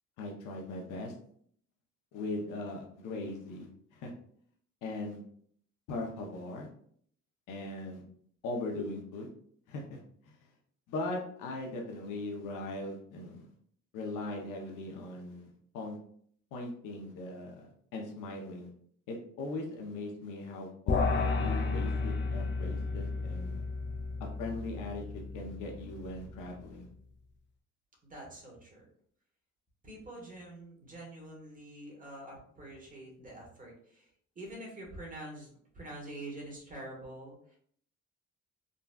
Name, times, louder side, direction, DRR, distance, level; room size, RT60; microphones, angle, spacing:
voice 1, 0.2-1.1 2.1-4.1 4.8-5.2 5.9-6.7 7.5-8.0 8.4-9.3 9.7-10.0 10.9-13.5 13.9-16.0 16.5-17.7 17.9-18.7 19.1-23.6 24.2-26.9, left 2 dB, 85° left, 0 dB, 0.7 m, -39 dB
sound 1, 20.9-26.4, left 3 dB, 40° left, 0.4 m, -33 dB
voice 2, 28.0-28.9 29.8-34.1 34.3-35.5 35.7-37.6, right 1 dB, 25° right, -2 dB, 1.3 m, -46 dB
3.8 x 2.2 x 2.3 m, 0.62 s
cardioid pair, 90°, 30 cm